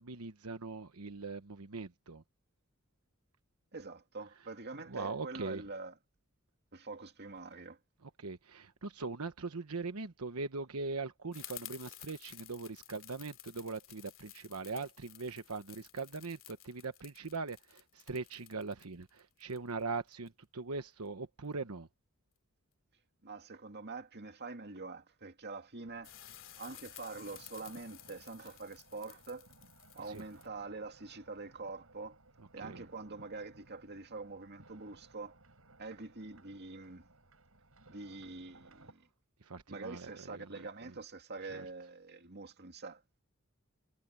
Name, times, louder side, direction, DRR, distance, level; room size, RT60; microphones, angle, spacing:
voice 1, 0.0-2.2 4.9-5.6 8.0-21.9 30.1-30.2 32.6-32.8 39.4-40.9 41.5-41.7, right 3 dB, 85° right, 1.1 m, -41 dB
voice 2, 3.7-6.0 6.7-7.8 23.2-26.1 26.5-29.5 29.9-32.2 32.5-35.4 35.8-37.1 37.9-39.1 39.7-43.0, right 3 dB, 50° right, 2.4 m, -45 dB
sound 1, 11.3-20.3 26.0-30.5, left 14 dB, 65° left, 3.1 m, -53 dB
sound 2, 25.8-38.9, right 2 dB, 70° right, 7.3 m, -61 dB
head